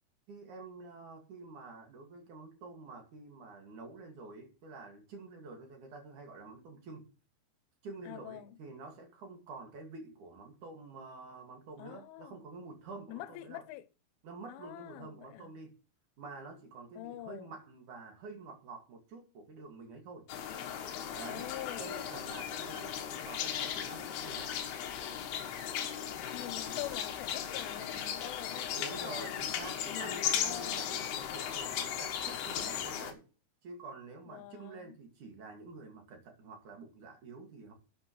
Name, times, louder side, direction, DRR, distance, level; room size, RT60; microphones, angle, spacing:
voice 1, 0.3-7.1 7.8-13.6 14.2-15.7 16.2-20.3 21.1-21.5 21.8-24.6 28.7-33.2 33.6-37.7, right 3 dB, 50° right, 3.2 m, -48 dB
voice 2, 8.1-8.6 11.8-12.4 13.1-13.8 14.5-15.5 17.0-17.5 21.3-22.2 26.3-29.6 29.9-30.8 34.3-35.0, left 14 dB, 90° left, 3.3 m, -45 dB
sound 1, 20.3-33.1, left 9 dB, 65° left, 3.0 m, -37 dB
11.5 x 10.5 x 3.2 m
omnidirectional pair, 5.4 m